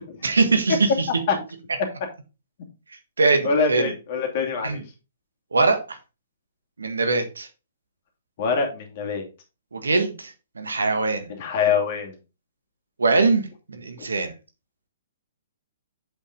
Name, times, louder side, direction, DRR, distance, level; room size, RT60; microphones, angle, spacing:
voice 1, 0.2-1.1 3.2-3.9 4.6-4.8 5.5-6.0 6.8-7.5 9.7-11.3 13.0-14.3, right 3 dB, 75° right, 7 dB, 1.5 m, -22 dB
voice 2, 3.4-4.8 8.4-9.3 11.4-12.1, left 5 dB, 45° left, 3 dB, 2.6 m, -24 dB
7.8 x 5.6 x 3.8 m, 0.30 s
figure-of-eight pair, 120°, 0 cm